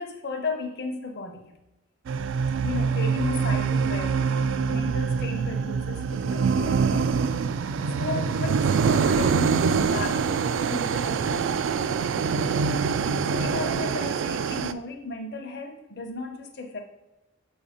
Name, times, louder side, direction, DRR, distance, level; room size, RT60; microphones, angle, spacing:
voice 1, 0.0-1.5 2.6-7.6 7.9-16.8, left 3 dB, 60° left, 4 dB, 0.8 m, -35 dB
sound 1, 2.1-14.7, right 5 dB, 75° right, 0.3 m, -25 dB
7.1 x 2.7 x 4.9 m, 1.0 s
head